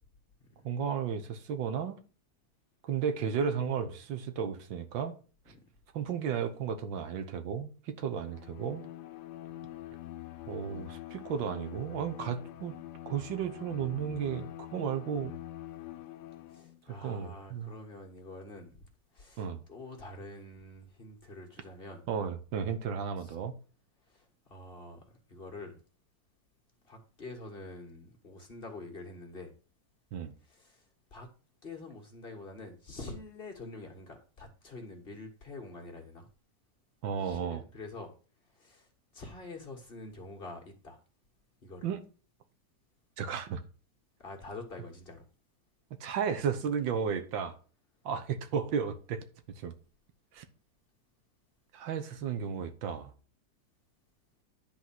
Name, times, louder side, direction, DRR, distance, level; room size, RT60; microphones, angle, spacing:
voice 1, 0.6-2.0 2.8-5.1 5.9-8.8 10.5-12.8 13.1-15.3 17.0-17.7 19.4-19.6 22.1-23.5 30.1-30.3 37.0-37.6 41.8-42.0 43.2-43.6 46.0-47.6 48.0-49.3 49.6-49.7 50.3-50.4 51.7-53.1, right 7 dB, 85° right, 1.8 m, -33 dB
Bowed string instrument, 8.2-16.8, left 14 dB, 70° left, 1.1 m, -45 dB
voice 2, 16.5-22.1 23.2-23.4 24.1-25.8 26.8-29.5 30.4-31.3 31.6-36.3 37.2-38.1 38.5-38.9 39.1-41.0 41.6-41.9 44.2-45.3, left 2 dB, 30° left, 1.6 m, -46 dB
10.5 x 4.2 x 5.9 m
omnidirectional pair, 2.0 m